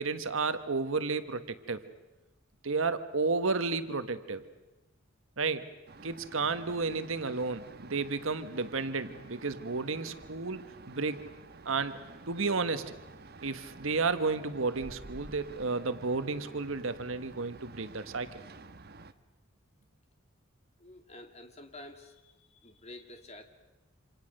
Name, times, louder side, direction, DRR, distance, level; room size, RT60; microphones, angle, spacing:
voice 1, 0.0-1.8 2.6-4.4 5.4-5.6 6.0-11.3 11.6-12.0 12.3-12.9 13.4-18.4, right 4 dB, 70° right, 10 dB, 1.3 m, -32 dB
sound 1, 5.9-19.1, right 3 dB, 45° right, 1.1 m, -50 dB
voice 2, 20.8-23.4, left 1 dB, 30° left, 6 dB, 2.3 m, -49 dB
27.5 x 27.0 x 6.5 m, 1.1 s
head